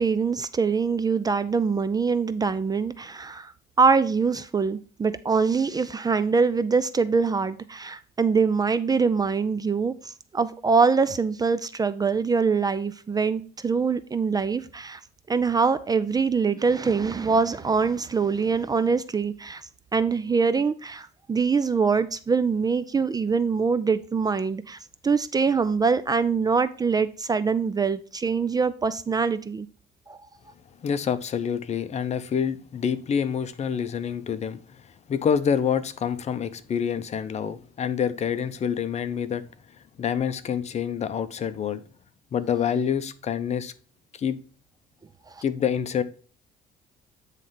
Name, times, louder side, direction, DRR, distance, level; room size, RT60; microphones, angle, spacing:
voice 1, 0.0-3.5 3.8-15.0 15.3-19.6 19.9-29.7 30.1-30.2 45.3-45.4, right 5 dB, 25° right, 0.4 m, -24 dB
voice 2, 30.8-39.4 40.0-41.8 42.3-43.7 44.1-44.4 45.4-46.0, left 7 dB, 40° left, 0.7 m, -27 dB
9.0 x 3.3 x 5.7 m
cardioid pair, 110°, 17 cm